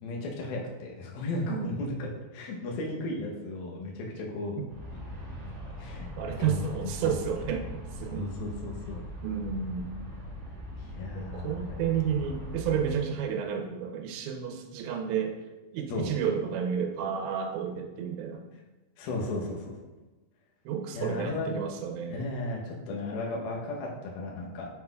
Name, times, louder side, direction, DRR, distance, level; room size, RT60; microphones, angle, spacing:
voice 1, 0.0-4.6 5.8-6.1 6.4-7.1 8.1-9.0 10.9-11.8 15.9-16.1 19.0-19.7 20.9-21.5 22.1-24.7, left 2 dB, 75° left, -2 dB, 2.4 m, -35 dB
voice 2, 1.4-1.8 4.6-4.7 6.2-8.3 9.2-9.9 11.2-15.4 15.7-18.4 20.7-22.3, right 7 dB, 85° right, 3 dB, 2.9 m, -31 dB
Aircraft, 4.7-13.0, equal, 45° right, 2.1 m, -41 dB
7.4 x 5.8 x 2.3 m, 1.1 s
omnidirectional pair, 5.2 m